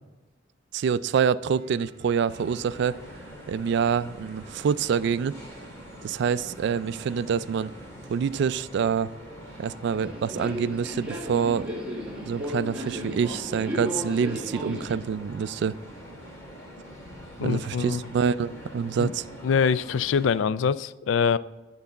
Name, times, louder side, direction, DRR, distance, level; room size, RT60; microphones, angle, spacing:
voice 1, 0.7-3.0 3.5-5.4 6.0-7.7 8.1-9.1 9.6-11.7 12.3-15.8 17.4-19.3, right 6 dB, 65° right, 17 dB, 0.3 m, -26 dB
sound 1, 1.5-12.5, right 1 dB, 30° right, 1.4 m, -55 dB
sound 2, 2.3-20.4, equal, 15° left, 2.3 m, -45 dB
Subway metro underground, 9.9-14.9, equal, 5° right, 1.7 m, -34 dB
voice 2, 17.4-18.0 19.0-19.1 19.4-21.4, left 6 dB, 75° left, 18 dB, 0.3 m, -24 dB
11.5 x 4.0 x 7.0 m, 1.1 s
head